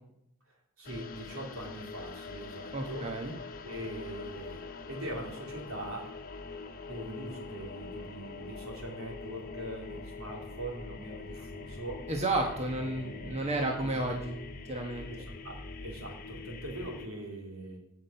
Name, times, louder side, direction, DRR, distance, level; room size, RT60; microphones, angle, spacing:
sound 1, 0.8-17.1, left 3 dB, 45° left, 1.1 m, -44 dB
voice 1, 0.8-3.1 3.6-4.6 4.9-6.1 6.8-12.1 12.8-13.3 13.8-13.9 15.1-17.8, right 1 dB, 75° right, 0 dB, 3.3 m, -42 dB
voice 2, 2.7-3.3 12.1-14.4 14.7-15.1, right 2 dB, 30° right, 1 dB, 1.3 m, -32 dB
16.5 x 6.1 x 5.8 m, 0.83 s
head